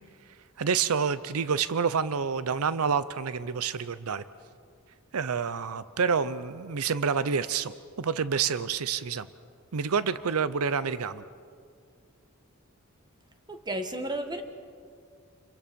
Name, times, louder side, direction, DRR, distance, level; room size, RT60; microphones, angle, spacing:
voice 1, 0.6-4.2 5.1-7.7 8.0-9.3 9.7-11.2, right 6 dB, 80° right, 15 dB, 0.6 m, -28 dB
voice 2, 13.5-14.4, right 1 dB, 20° right, 6 dB, 1.5 m, -33 dB
28.5 x 22.5 x 5.3 m, 2.2 s
head